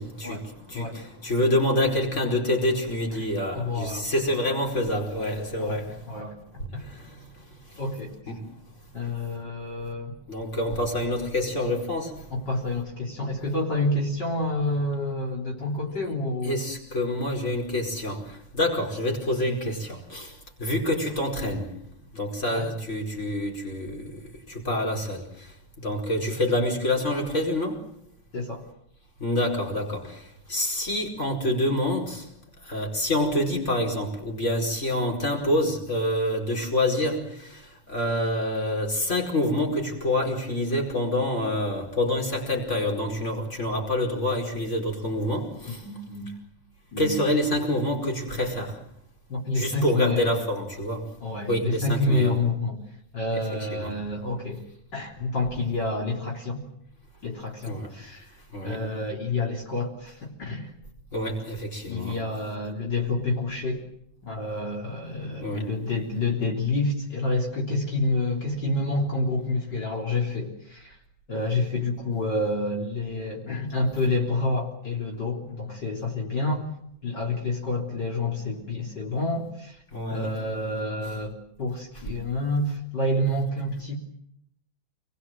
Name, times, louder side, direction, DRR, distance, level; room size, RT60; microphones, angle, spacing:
voice 1, 0.0-6.0 6.8-7.1 8.3-8.4 10.3-12.1 16.4-20.3 20.6-21.7 22.1-24.2 24.5-25.2 25.8-27.9 29.2-30.2 30.5-32.3 32.7-37.6 37.9-45.8 47.0-48.8 49.5-51.1 51.5-52.3 53.3-53.9 57.7-57.9 58.5-58.8 61.1-62.2 65.4-65.7 79.9-80.4, left 1 dB, 35° left, 5.2 m, -27 dB
voice 2, 3.5-4.1 5.2-5.3 5.6-5.8 6.1-6.4 6.7-6.8 7.8-8.1 8.9-10.2 12.3-16.6 22.5-22.7 28.3-28.6 45.7-46.3 46.9-47.1 49.3-50.3 51.2-52.8 53.1-54.6 54.9-56.6 57.2-58.3 58.6-60.7 61.9-63.8 64.2-71.0 71.3-76.6 77.0-79.8 80.1-84.0, left 2 dB, 60° left, 4.3 m, -28 dB
29.0 x 21.5 x 7.6 m
omnidirectional pair, 2.1 m